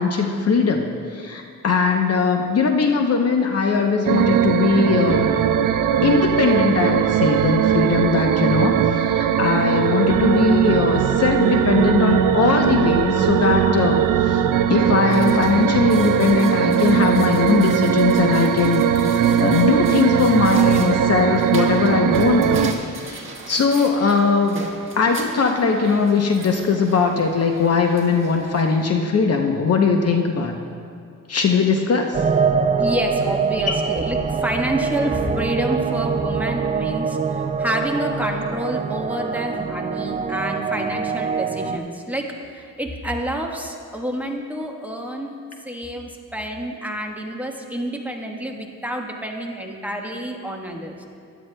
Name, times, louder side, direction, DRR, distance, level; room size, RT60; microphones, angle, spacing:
voice 1, 0.0-5.3 6.0-14.4 14.7-24.6 25.0-30.6 31.3-32.1 33.7-33.8, left 5 dB, 50° left, 3 dB, 0.8 m, -20 dB
sound 1, 4.1-22.7, right 9 dB, 75° right, 0.5 m, -19 dB
sound 2, 15.1-28.9, right 3 dB, 40° right, 1.4 m, -39 dB
sound 3, 32.1-41.8, right 5 dB, 25° right, 0.4 m, -24 dB
voice 2, 32.8-45.3 45.6-51.0, right 1 dB, 5° right, 0 dB, 1.2 m, -28 dB
15.5 x 11.0 x 2.2 m, 2.3 s
cardioid pair, 80°, 32 cm